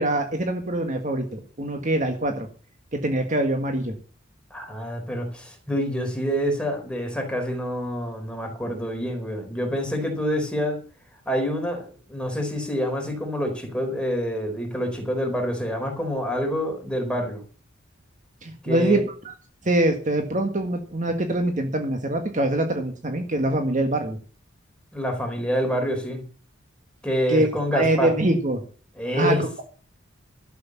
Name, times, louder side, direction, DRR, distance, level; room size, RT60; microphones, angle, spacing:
voice 1, 0.0-2.5 2.9-4.0 18.4-19.3 19.6-24.2 27.3-28.6 29.1-29.6, right 1 dB, 40° right, 5 dB, 1.7 m, -24 dB
voice 2, 4.5-10.8 11.3-17.4 18.6-19.0 24.9-26.2 27.0-28.1 29.0-29.4, equal, 5° left, 3 dB, 4.2 m, -27 dB
12.5 x 8.3 x 7.3 m, 0.40 s
head